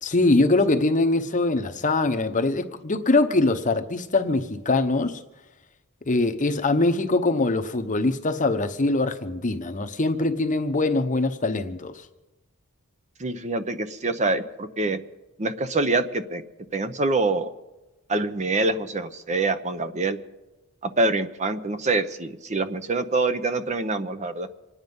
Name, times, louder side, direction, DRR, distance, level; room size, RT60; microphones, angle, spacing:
voice 1, 0.0-5.2 6.1-12.0, left 2 dB, 35° left, 0.9 m, -23 dB
voice 2, 13.2-15.0 15.4-16.4 16.7-17.5 18.1-20.2 20.8-24.5, right 3 dB, 30° right, 0.7 m, -25 dB
26.5 x 9.6 x 5.4 m
head